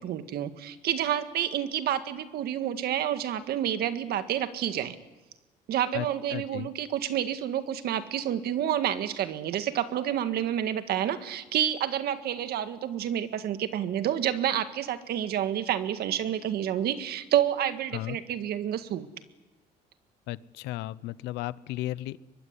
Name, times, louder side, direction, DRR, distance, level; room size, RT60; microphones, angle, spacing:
voice 1, 0.0-5.0 5.7-19.1, right 10 dB, 70° right, 10 dB, 1.9 m, -29 dB
voice 2, 6.3-6.7 17.9-18.2 20.3-22.2, left 16 dB, 90° left, 19 dB, 0.8 m, -34 dB
24.0 x 21.5 x 9.9 m, 1.1 s
cardioid pair, 110°, 17 cm